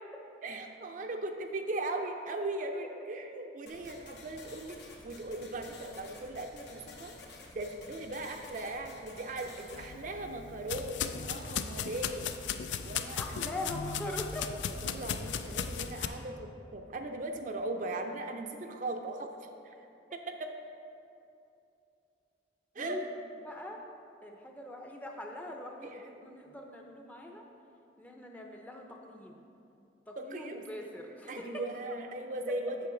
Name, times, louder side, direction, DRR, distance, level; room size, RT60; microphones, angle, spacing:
voice 1, 0.4-4.8 5.0-7.1 7.5-12.3 12.8-13.4 14.8-19.3 20.1-20.5 22.8-23.0 25.8-26.1 30.2-30.7 31.3-32.8, right 2 dB, 45° right, 4 dB, 0.5 m, -38 dB
sound 1, 3.7-9.9, left 3 dB, 70° left, 1.0 m, -51 dB
sound 2, 9.7-16.1, left 7 dB, 85° left, 0.4 m, -36 dB
voice 2, 13.2-14.5 22.8-23.0 23.4-23.8 24.2-27.4 28.0-29.4 30.1-31.6, left 1 dB, 10° left, 1 dB, 0.5 m, -42 dB
8.4 x 6.9 x 3.8 m, 2.7 s
head